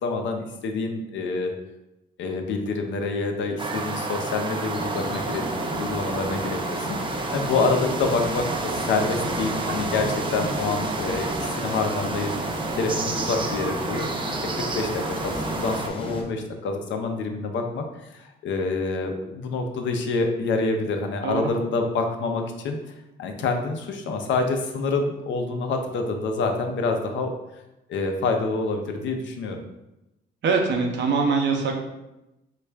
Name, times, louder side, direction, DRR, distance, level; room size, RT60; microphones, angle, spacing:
voice 1, 0.0-1.5 2.2-5.4 5.7-14.1 14.5-15.3 15.6-17.8 18.1-22.8 23.2-27.3 27.9-29.6, left 3 dB, 70° left, 4 dB, 0.5 m, -27 dB
sound 1, 3.6-15.9, right 3 dB, 25° right, 0.4 m, -30 dB
sound 2, 4.7-16.2, left 1 dB, 25° left, 0.7 m, -33 dB
voice 2, 30.4-31.8, right 4 dB, 65° right, 2 dB, 0.7 m, -23 dB
3.3 x 2.4 x 3.2 m, 0.94 s
cardioid pair, 90°, 20 cm